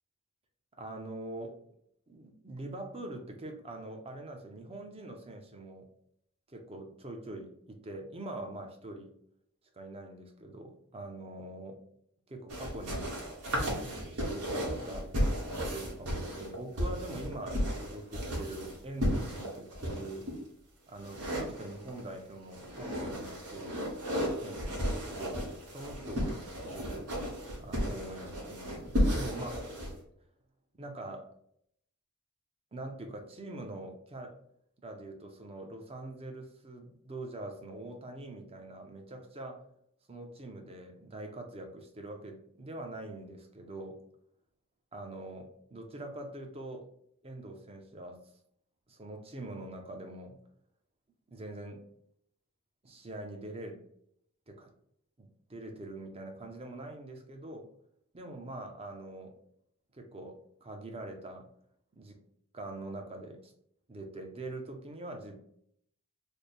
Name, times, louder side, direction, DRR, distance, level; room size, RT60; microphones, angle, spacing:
voice 1, 0.7-1.6 2.1-5.9 6.5-9.1 9.7-11.8 12.3-13.2 13.7-15.1 15.7-20.3 20.9-23.8 24.4-24.8 25.1-25.4 25.7-27.1 27.6-29.7 30.7-31.3 32.7-34.4 34.8-39.6 40.1-44.0 44.9-46.9 47.2-48.2 48.9-50.4 51.3-51.8 52.8-53.8 54.5-54.7 55.2-57.7 58.1-59.3 59.9-61.5 61.9-62.2 62.5-63.5 63.9-65.4, right 2 dB, 25° right, 4 dB, 0.6 m, -43 dB
sound 1, 12.5-20.3 21.0-22.1 22.5-29.9, equal, 85° right, 1.3 m, -34 dB
3.3 x 2.1 x 4.2 m, 0.68 s
head